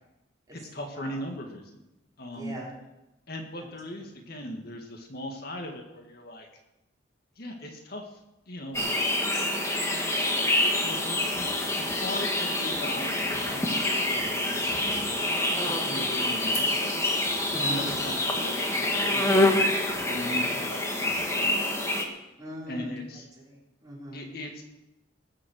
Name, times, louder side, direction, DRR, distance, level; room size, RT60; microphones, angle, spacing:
voice 1, 0.5-1.8 2.2-2.5 3.3-6.5 7.3-8.2 8.5-8.9 10.4-15.1 15.5-17.0 17.5-19.6 20.1-21.8 22.7-23.3 24.1-24.6, left 1 dB, 55° left, 3 dB, 1.8 m, -39 dB
voice 2, 2.3-2.7 17.5-17.9 22.4-22.9 23.4-24.2, equal, 20° right, -5 dB, 4.7 m, -40 dB
sound 1, 8.7-22.0, left 1 dB, 15° left, 1.6 m, -26 dB
20.0 x 7.6 x 6.4 m, 0.94 s
head